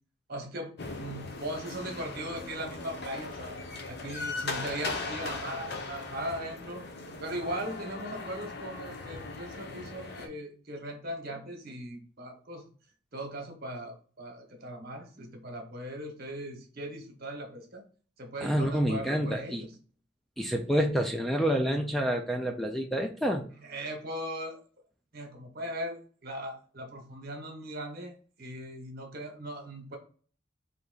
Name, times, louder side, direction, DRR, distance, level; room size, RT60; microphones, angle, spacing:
voice 1, 0.3-0.7 1.0-3.6 3.9-6.8 7.2-12.6 13.1-17.8 18.2-19.7 23.6-24.6 25.1-30.0, right 1 dB, 55° right, 3 dB, 1.2 m, -39 dB
sound 1, 0.8-10.3, left 3 dB, 60° left, 0.7 m, -39 dB
voice 2, 18.4-19.6 20.4-23.4, equal, ahead, 3 dB, 0.3 m, -28 dB
3.4 x 2.8 x 3.9 m, 0.41 s
head